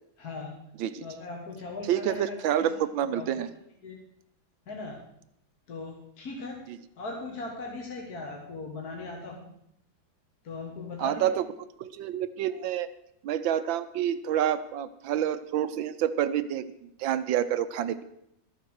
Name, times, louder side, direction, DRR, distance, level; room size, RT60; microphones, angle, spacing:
voice 1, 0.2-0.6 1.0-2.8 3.1-3.4 3.8-4.0 4.7-5.0 5.7-6.6 7.0-9.5 10.4-11.4, left 3 dB, 55° left, -1 dB, 2.2 m, -39 dB
voice 2, 1.9-3.5 6.7-6.8 11.0-11.4 11.8-12.9 13.2-18.0, right 10 dB, 90° right, 13 dB, 1.5 m, -28 dB
13.0 x 8.0 x 6.3 m, 0.76 s
omnidirectional pair, 2.1 m